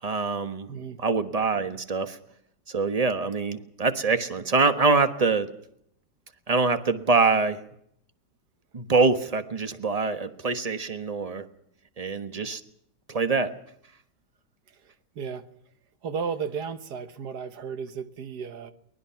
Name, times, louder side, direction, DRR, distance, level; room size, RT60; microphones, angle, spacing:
voice 1, 0.0-0.7 1.0-2.2 2.7-5.5 6.5-7.6 8.7-11.4 12.0-12.6 13.1-13.5, right 4 dB, 25° right, 9 dB, 1.2 m, -24 dB
voice 2, 0.7-1.0 14.7-15.5 16.0-18.7, right 6 dB, 70° right, 11 dB, 1.8 m, -34 dB
23.0 x 19.5 x 5.8 m, 0.72 s
omnidirectional pair, 1.8 m